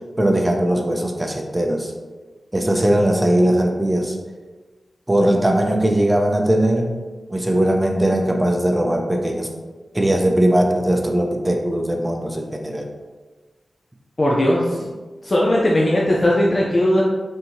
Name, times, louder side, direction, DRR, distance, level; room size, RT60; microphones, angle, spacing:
voice 1, 0.2-1.9 2.5-4.2 5.1-7.0 7.3-9.5 9.9-12.9, right 1 dB, 20° right, 2 dB, 0.6 m, -19 dB
voice 2, 14.2-14.9 15.2-17.0, left 1 dB, 45° left, -4 dB, 0.5 m, -18 dB
3.6 x 2.7 x 2.7 m, 1.3 s
cardioid pair, 40°, 0 cm